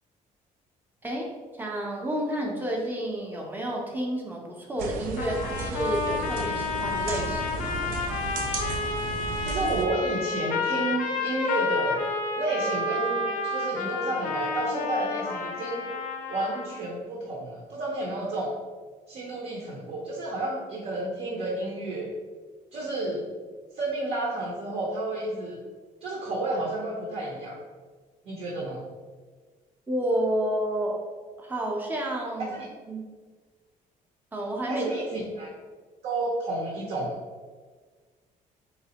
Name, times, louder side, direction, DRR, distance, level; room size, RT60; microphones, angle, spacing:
voice 1, 1.6-8.0 29.9-31.0 31.4-32.6 32.9-33.0 34.3-34.9 35.1-35.3, right 1 dB, 15° right, -1 dB, 0.6 m, -30 dB
sound 1, 4.8-9.9, right 4 dB, 85° right, 0.4 m, -34 dB
sound 2, 5.2-16.8, left 3 dB, 80° left, 0.5 m, -30 dB
voice 2, 9.4-12.0 12.4-15.9 16.3-18.5 19.1-22.1 22.7-23.3 23.7-25.6 26.0-27.6 28.2-28.9 32.5-32.7 34.7-35.5 36.0-37.1, right 2 dB, 55° right, -3 dB, 0.7 m, -31 dB
4.1 x 3.1 x 2.9 m, 1.5 s
cardioid pair, 165°, 14 cm